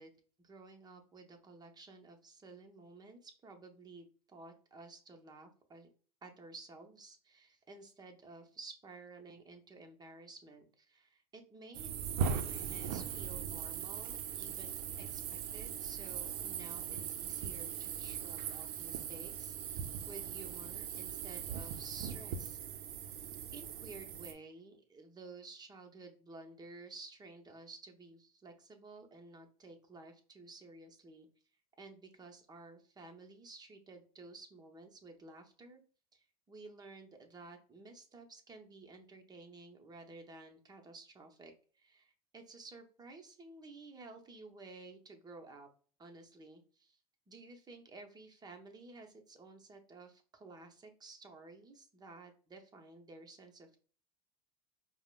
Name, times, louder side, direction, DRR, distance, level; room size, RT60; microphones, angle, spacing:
voice 1, 0.0-5.9 6.2-22.6 23.5-31.3 31.8-35.8 36.1-45.7 46.0-47.0 47.3-53.8, right 3 dB, 20° right, 3 dB, 0.7 m, -53 dB
sound 1, 11.7-24.3, right 8 dB, 75° right, 0.5 m, -40 dB
4.7 x 2.0 x 2.2 m, 0.40 s
hypercardioid pair, 90°, 20 cm